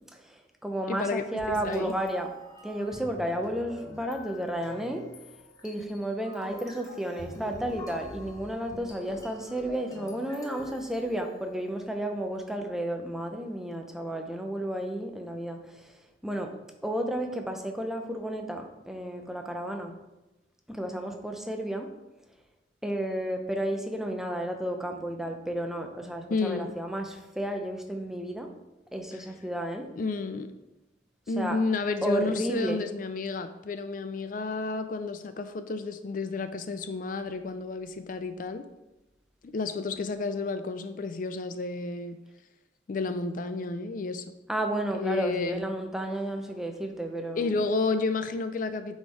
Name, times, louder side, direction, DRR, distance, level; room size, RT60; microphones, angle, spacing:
voice 1, 0.0-2.3 2.6-5.0 5.6-15.9 16.2-16.5 16.8-19.9 20.7-21.9 22.8-28.5 28.9-29.9 31.4-31.6 32.0-32.8 44.5-47.5, right 1 dB, ahead, 4 dB, 0.7 m, -32 dB
voice 2, 0.9-1.9 26.3-26.7 29.1-29.2 30.0-30.5 31.3-38.6 39.4-42.2 42.9-44.2 44.9-45.6 47.3-49.0, left 3 dB, 50° left, 10 dB, 0.4 m, -31 dB
sound 1, 1.4-11.7, equal, 20° left, 1.2 m, -45 dB
8.2 x 4.3 x 4.7 m, 1.0 s
head